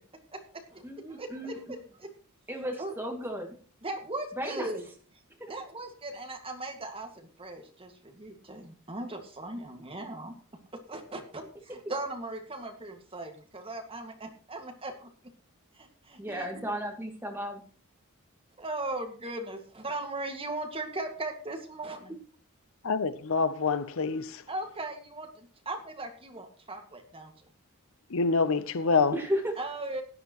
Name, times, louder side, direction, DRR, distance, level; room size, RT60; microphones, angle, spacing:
voice 1, 0.3-2.1 2.8-2.9 3.8-4.8 5.5-10.3 10.9-15.1 15.7-16.5 18.6-22.1 24.5-27.3 29.6-30.0, right 2 dB, 25° right, 2.0 m, -38 dB
voice 2, 0.8-1.6 2.5-3.5 4.4-4.7 5.4-5.5 16.2-17.6 22.1-22.2 29.1-29.6, equal, 10° right, 2.3 m, -34 dB
voice 3, 22.8-24.4 28.1-29.1, left 4 dB, 65° left, 0.7 m, -26 dB
17.0 x 11.0 x 3.1 m
head